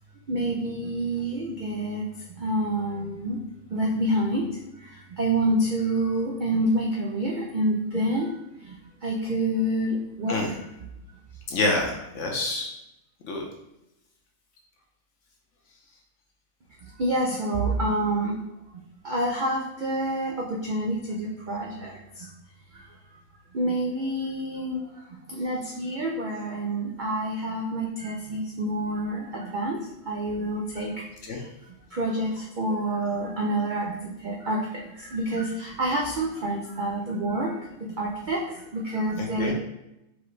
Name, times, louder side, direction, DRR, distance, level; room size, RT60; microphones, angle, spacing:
voice 1, 0.3-2.0 2.3-3.4 3.7-4.4 5.2-8.3 8.7-8.8 9.0-10.4 17.0-18.3 19.0-22.3 23.5-24.8 25.3-29.8 30.1-30.9 31.9-33.9 34.2-37.6 38.0-38.4 38.7-39.5, right 1 dB, 70° right, -2 dB, 0.4 m, -27 dB
voice 2, 11.5-12.7 13.2-13.4 31.3-31.4 39.2-39.5, left 2 dB, 60° left, 0 dB, 1.0 m, -27 dB
4.7 x 2.7 x 3.1 m, 0.87 s
omnidirectional pair, 1.6 m